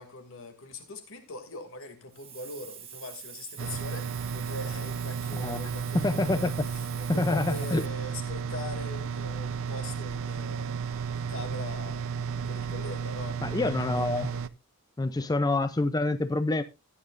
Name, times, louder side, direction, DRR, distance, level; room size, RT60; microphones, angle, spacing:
voice 1, 0.0-14.4, left 2 dB, 65° left, 2.5 m, -42 dB
Hiss, 2.1-7.9, right 8 dB, 25° right, 1.4 m, -45 dB
sound 1, 3.6-14.5, right 6 dB, 65° right, 0.6 m, -33 dB
voice 2, 5.9-6.5 7.1-7.8 13.4-14.3 15.0-16.6, left 2 dB, 15° left, 0.5 m, -27 dB
16.0 x 9.5 x 2.5 m
head